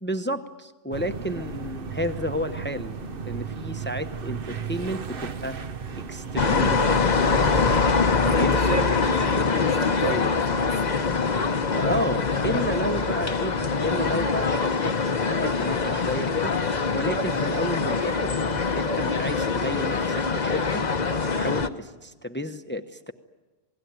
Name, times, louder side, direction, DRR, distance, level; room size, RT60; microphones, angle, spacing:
voice 1, 0.0-2.9 3.2-5.6 6.1-7.8 8.4-8.9 11.7-15.0 15.3-16.5 16.9-18.4 18.7-20.8 21.3-23.1, equal, 10° left, 8 dB, 0.9 m, -31 dB
sound 1, 0.9-7.8, right 5 dB, 60° right, 1.2 m, -35 dB
sound 2, 6.4-21.7, left 4 dB, 45° left, 1.1 m, -24 dB
voice 2, 8.2-11.0, right 3 dB, 85° right, 1 dB, 3.2 m, -32 dB
28.5 x 19.0 x 9.5 m, 1.2 s
omnidirectional pair, 1.1 m